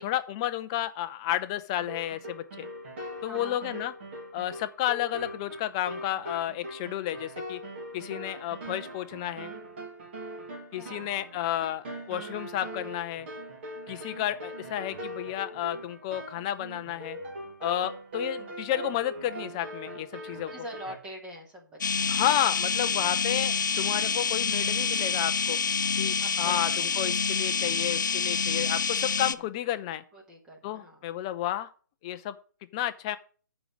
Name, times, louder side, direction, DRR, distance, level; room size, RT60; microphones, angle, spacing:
voice 1, 0.0-2.7 3.2-3.9 4.3-7.6 7.9-9.5 10.7-13.3 13.9-17.2 17.6-20.5 22.1-25.6 26.0-30.0 30.6-31.7 32.0-32.4 32.7-33.2, left 12 dB, 15° left, 12 dB, 0.4 m, -31 dB
sound 1, 1.8-21.0, right 1 dB, 35° right, 2.2 m, -41 dB
voice 2, 3.2-3.7 10.7-11.1 20.2-22.1 22.3-22.5 26.2-27.0 29.3-29.4 30.1-31.1, equal, 5° right, -1 dB, 1.4 m, -45 dB
sound 2, 21.8-29.4, left 5 dB, 70° left, 0.5 m, -27 dB
6.8 x 5.2 x 7.2 m, 0.41 s
hypercardioid pair, 155°, 10 cm